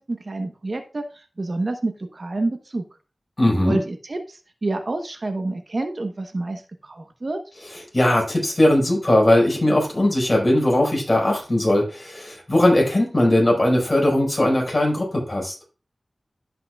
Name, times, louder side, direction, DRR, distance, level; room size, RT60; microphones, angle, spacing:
voice 1, 0.1-2.8 3.6-7.4, right 2 dB, 50° right, 6 dB, 1.0 m, -28 dB
voice 2, 3.4-3.8 7.7-15.5, left 1 dB, 30° left, -1 dB, 4.9 m, -19 dB
15.5 x 5.7 x 2.4 m, 0.33 s
wide cardioid pair, 80°, 0 cm